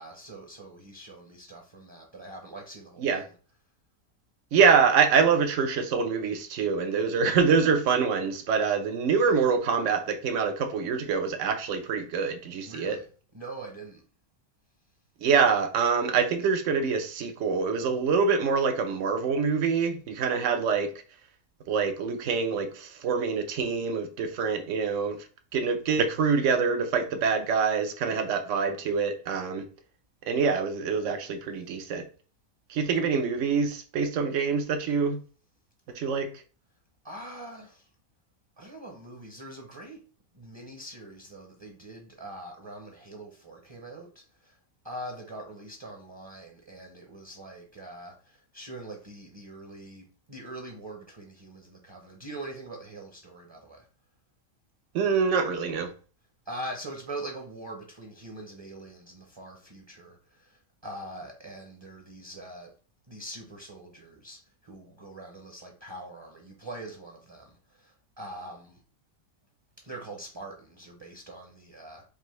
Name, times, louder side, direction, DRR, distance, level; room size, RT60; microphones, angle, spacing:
voice 1, 0.0-3.3 12.7-13.1 13.3-14.0 37.0-37.9 38.6-40.0 40.3-44.6 44.8-53.9 56.5-62.7 63.1-68.8 69.8-72.0, right 1 dB, 25° right, 0.7 m, -43 dB
voice 2, 4.5-13.0 15.2-20.9 21.7-25.2 25.5-29.6 30.3-32.0 32.7-35.2 35.9-36.3 54.9-55.9, right 5 dB, 70° right, 1.0 m, -25 dB
5.0 x 2.7 x 3.1 m
omnidirectional pair, 1.4 m